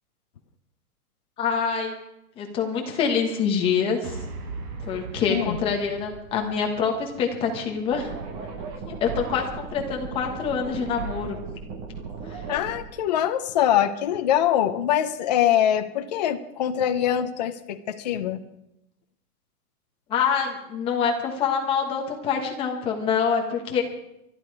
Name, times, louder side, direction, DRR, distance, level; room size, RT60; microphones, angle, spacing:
voice 1, 1.4-1.9 2.4-4.2 4.9-8.1 8.9-11.4 12.2-12.4 20.1-23.8, left 6 dB, 10° left, 2 dB, 1.3 m, -25 dB
sound 1, 4.0-8.5, right 4 dB, 85° right, 4.0 m, -40 dB
sound 2, 7.9-12.9, right 4 dB, 15° right, 1.0 m, -36 dB
voice 2, 12.5-18.4, left 10 dB, 30° left, 6 dB, 0.7 m, -23 dB
24.0 x 11.5 x 4.8 m, 0.87 s
hypercardioid pair, 175°, 45 cm